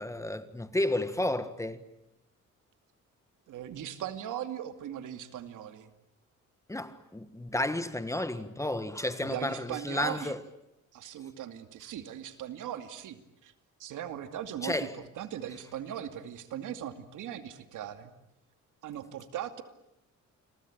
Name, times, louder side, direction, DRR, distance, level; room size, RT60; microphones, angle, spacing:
voice 1, 0.0-1.8 6.7-10.4 14.6-14.9, left 1 dB, 10° left, 1.6 m, -32 dB
voice 2, 3.5-5.9 9.2-10.3 10.9-13.5 13.8-14.9 15.2-18.1 18.8-19.6, right 10 dB, 80° right, 2.5 m, -39 dB
29.5 x 23.0 x 8.7 m
cardioid pair, 125°, 30 cm